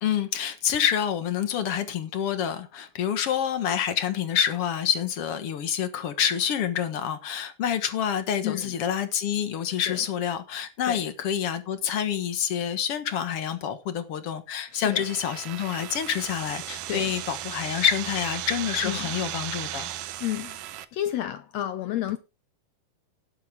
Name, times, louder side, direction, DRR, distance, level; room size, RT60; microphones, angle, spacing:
voice 1, 0.0-19.9, left 9 dB, 55° left, 2.0 m, -27 dB
voice 2, 14.7-15.0 16.9-17.1 18.8-19.1 20.2-22.2, left 13 dB, 75° left, 1.6 m, -31 dB
sound 1, 14.7-20.9, right 13 dB, 90° right, 2.5 m, -36 dB
18.0 x 7.7 x 3.5 m
omnidirectional pair, 3.8 m